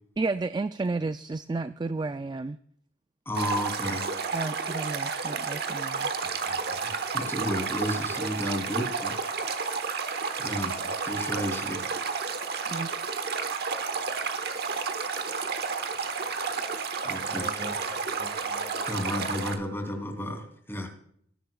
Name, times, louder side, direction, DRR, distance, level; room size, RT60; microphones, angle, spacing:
voice 1, 0.2-2.6 4.3-6.1 12.7-12.9, right 3 dB, 25° right, 11 dB, 0.3 m, -32 dB
voice 2, 3.3-4.1 6.2-9.2 10.4-11.9 17.0-17.5 18.9-20.9, equal, 15° left, 4 dB, 3.0 m, -33 dB
Stream, 3.3-19.6, right 5 dB, 60° right, 1.2 m, -31 dB
voice 3, 17.2-18.8 19.2-19.3, left 1 dB, 40° right, 3 dB, 4.7 m, -42 dB
19.5 x 10.5 x 2.3 m, 0.64 s
head